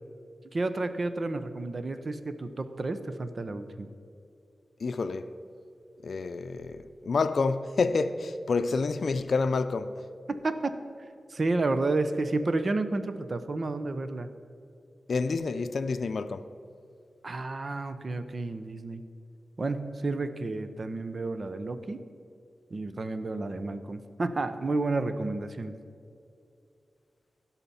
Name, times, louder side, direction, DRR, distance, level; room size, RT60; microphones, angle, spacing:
voice 1, 0.5-3.9 10.4-10.7 11.3-14.3 17.2-19.0 19.6-22.0 22.7-25.7, right 2 dB, 50° right, 0.8 m, -31 dB
voice 2, 4.8-5.3 6.0-10.0 15.1-16.5, left 4 dB, 70° left, 0.5 m, -28 dB
16.0 x 5.8 x 5.6 m
wide cardioid pair, 75°, 0 cm